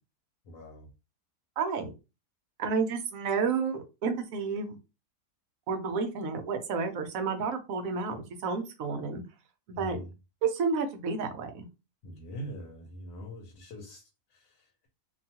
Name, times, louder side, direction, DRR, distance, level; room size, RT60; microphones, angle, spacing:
voice 1, 0.4-0.9 9.7-10.1 12.0-14.9, equal, 85° left, 1.3 m, -43 dB
voice 2, 1.6-1.9 2.6-4.8 5.7-9.2 9.8-10.0 10.4-11.7, right 5 dB, 65° right, 0.9 m, -30 dB
2.8 x 2.3 x 2.8 m
omnidirectional pair, 1.8 m